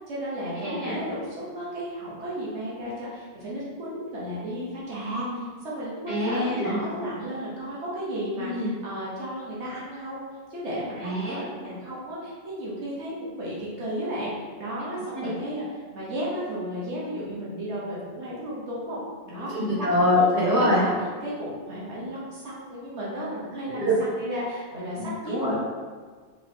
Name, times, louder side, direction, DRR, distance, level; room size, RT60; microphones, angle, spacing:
voice 1, 0.1-10.2 10.5-14.3 14.6-15.7 15.9-19.0 19.3-19.5 20.0-20.2 20.6-20.9 21.2-25.6, equal, 90° right, -7 dB, 1.4 m, -34 dB
voice 2, 0.6-1.0 5.2-5.4 6.1-6.8 8.4-8.8 11.0-11.8 15.1-15.3 19.5-20.8 23.7-23.9 25.0-25.6, left 1 dB, 35° right, -10 dB, 1.7 m, -25 dB
4.5 x 3.5 x 2.7 m, 1.5 s
omnidirectional pair, 1.1 m